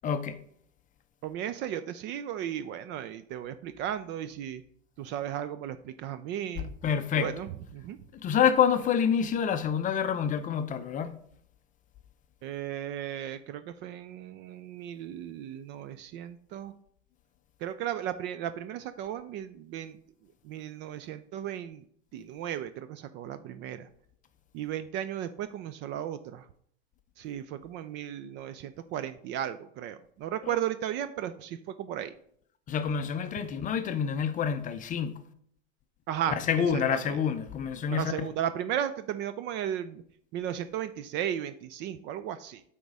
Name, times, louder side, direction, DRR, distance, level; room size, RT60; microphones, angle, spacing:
voice 1, 0.0-0.4 6.8-7.3 8.2-11.2 32.7-35.3 36.4-38.3, left 7 dB, 25° left, 0.5 m, -27 dB
voice 2, 1.2-4.6 5.0-6.7 7.2-8.0 12.4-16.7 17.6-20.0 20.4-21.8 22.1-23.9 24.5-26.5 27.2-32.1 36.1-36.8 37.1-37.2 37.9-40.0 40.3-42.6, right 10 dB, 35° right, 0.4 m, -35 dB
8.4 x 3.6 x 5.1 m
hypercardioid pair, 105°, 33 cm